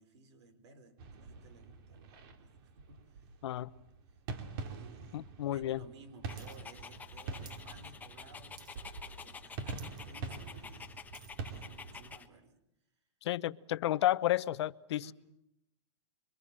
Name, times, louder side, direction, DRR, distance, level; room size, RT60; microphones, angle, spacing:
voice 1, 0.0-3.3 4.1-4.2 4.6-8.7 9.2-11.0 11.4-12.6 15.0-15.1, right 3 dB, 65° right, 11 dB, 5.2 m, -57 dB
sound 1, 1.0-12.1, right 4 dB, 50° right, 3.3 m, -45 dB
voice 2, 5.1-5.8 13.2-15.1, left 14 dB, 60° left, 16 dB, 0.9 m, -32 dB
Dog, 6.3-12.3, left 6 dB, 10° left, 1.3 m, -49 dB
sound 2, 6.4-6.6 6.8-7.7 8.0-8.3 8.6-9.0 9.4-9.5 9.7-10.0 10.5-11.4 12.1-12.2, right 9 dB, 25° right, 1.5 m, -57 dB
26.5 x 24.0 x 7.7 m, 0.82 s
hypercardioid pair, 150°, 15 cm